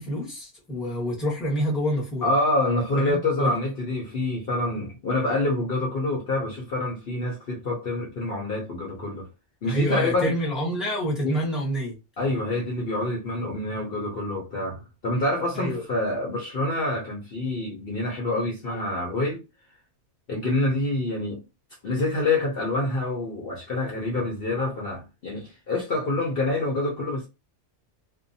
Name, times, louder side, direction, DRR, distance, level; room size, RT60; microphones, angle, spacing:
voice 1, 0.0-2.3 3.0-3.5 9.7-11.9 15.5-15.8, equal, ahead, 0.9 m, -27 dB
voice 2, 2.2-9.3 9.6-10.3 11.2-11.4 12.2-19.4 20.3-21.4 21.8-27.3, left 2 dB, 50° left, 0.9 m, -27 dB
2.6 x 2.2 x 2.6 m
omnidirectional pair, 1.4 m